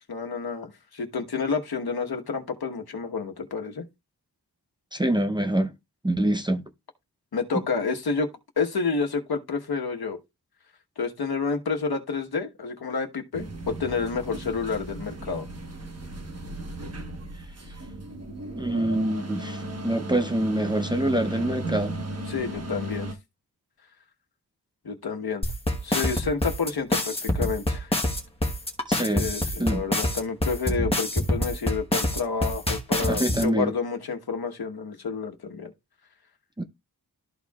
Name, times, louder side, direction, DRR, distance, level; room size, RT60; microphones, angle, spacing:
voice 1, 0.1-3.9 7.3-8.3 8.6-10.2 11.0-15.4 22.3-23.1 24.8-25.4 25.8-27.9 29.1-35.7, left 5 dB, 70° left, 1.3 m, -29 dB
voice 2, 4.9-5.7 6.0-6.6 18.6-21.9 28.9-29.3 29.6-29.8 33.1-33.7 36.6-36.7, right 1 dB, 10° right, 0.6 m, -25 dB
sound 1, 13.3-23.1, right 1 dB, 40° right, 1.3 m, -36 dB
sound 2, 25.4-33.4, left 1 dB, 15° left, 1.2 m, -26 dB
13.0 x 4.4 x 2.4 m
wide cardioid pair, 115°, 38 cm